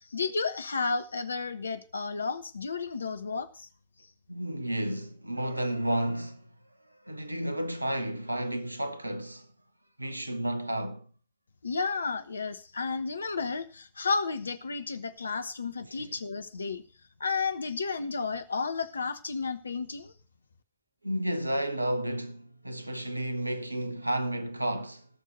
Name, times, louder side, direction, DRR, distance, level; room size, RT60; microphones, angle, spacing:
voice 1, 0.1-3.7 11.6-16.8 17.2-20.1, left 4 dB, 75° left, 0.9 m, -32 dB
voice 2, 4.3-6.5 7.0-9.5 10.0-11.1 15.8-16.2 21.0-25.1, right 1 dB, 85° right, 0.9 m, -32 dB
18.0 x 6.5 x 5.0 m
figure-of-eight pair, 90°, 0 cm